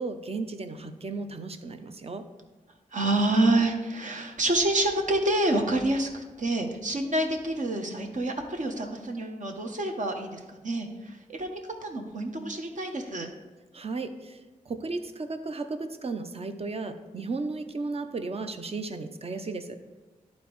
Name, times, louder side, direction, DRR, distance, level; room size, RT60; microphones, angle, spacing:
voice 1, 0.0-2.2 13.7-14.4 14.7-19.8, right 3 dB, 45° right, 8 dB, 0.7 m, -34 dB
voice 2, 2.9-11.5 11.8-13.3, right 1 dB, 60° right, 3 dB, 1.1 m, -27 dB
11.5 x 4.2 x 3.1 m, 1.2 s
cardioid pair, 60°, 14 cm